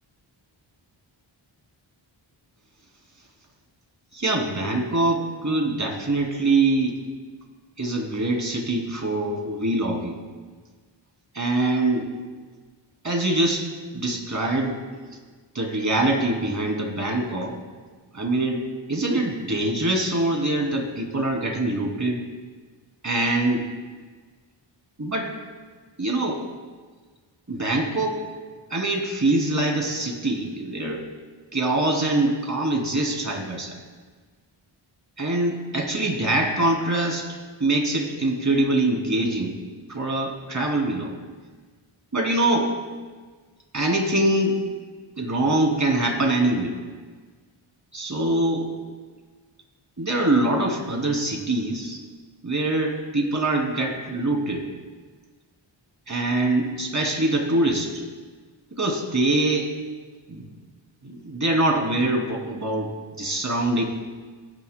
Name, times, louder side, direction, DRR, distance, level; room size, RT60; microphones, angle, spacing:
voice 1, 4.1-7.0 7.8-10.2 11.3-12.1 13.0-13.7 13.9-14.8 15.5-17.6 18.1-22.2 23.0-23.7 25.0-25.3 26.0-26.4 27.5-28.3 28.7-31.1 31.5-33.8 35.2-37.3 37.6-39.6 39.9-41.1 42.1-42.7 43.7-44.6 45.2-46.8 47.9-48.7 50.0-52.0 52.4-54.6 56.1-58.0 58.7-59.7 60.3-60.5 61.0-63.8, right 2 dB, 35° right, 1 dB, 2.9 m, -24 dB
21.5 x 10.0 x 2.2 m, 1.4 s
cardioid pair, 55°, 49 cm